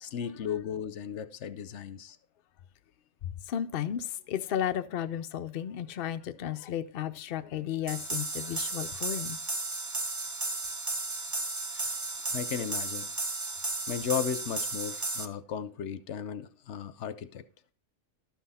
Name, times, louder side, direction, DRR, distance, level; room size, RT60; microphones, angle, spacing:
voice 1, 0.0-2.2 11.7-12.0 12.3-13.1 13.9-17.4, left 8 dB, 80° left, 1.0 m, -35 dB
voice 2, 3.2-9.4, left 10 dB, 60° left, 0.7 m, -34 dB
sound 1, 7.9-15.2, right 2 dB, 20° right, 0.5 m, -34 dB
12.5 x 5.9 x 4.2 m
omnidirectional pair, 1.2 m